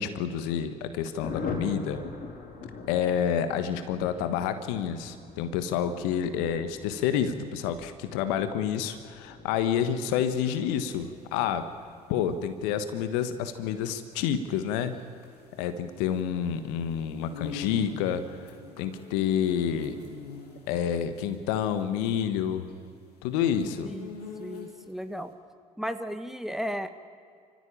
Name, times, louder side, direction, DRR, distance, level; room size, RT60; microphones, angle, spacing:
voice 1, 0.0-2.0 2.9-11.7 12.1-14.9 15.6-18.2 18.8-20.0 20.7-22.7 23.2-23.9, left 8 dB, 75° left, 10 dB, 1.5 m, -28 dB
Thunder, 1.2-17.3 17.6-17.7 18.0-18.1 18.4-18.8, left 4 dB, 55° left, 4.9 m, -44 dB
sound 1, 10.8-25.0, left 5 dB, 90° left, 2.5 m, -45 dB
voice 2, 23.8-25.3 25.8-26.9, equal, ahead, 9 dB, 1.7 m, -35 dB
28.0 x 15.0 x 8.7 m, 2.3 s
hypercardioid pair, 55°, 20 cm